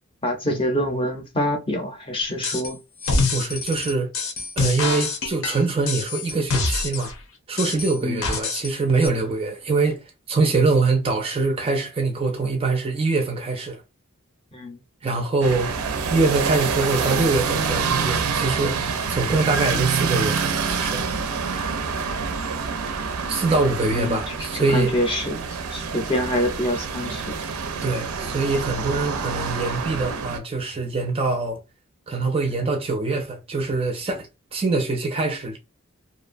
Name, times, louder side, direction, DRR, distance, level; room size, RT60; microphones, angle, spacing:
voice 1, 0.2-2.8 8.0-8.2 14.5-14.8 23.9-24.2 24.5-25.4 25.7-27.4, equal, 25° left, 0.6 m, -25 dB
sound 1, 2.4-2.7 3.0-7.1 7.6-8.7 9.0-9.1, left 3 dB, 75° left, 0.7 m, -25 dB
voice 2, 3.3-4.1 4.6-7.1 7.5-13.8 15.0-15.7 16.1-18.8 19.1-21.1 23.3-25.0 27.8-31.6 32.1-35.6, right 3 dB, 25° right, 0.4 m, -24 dB
sound 2, 15.4-30.4, right 5 dB, 85° right, 0.5 m, -27 dB
2.6 x 2.1 x 2.5 m
head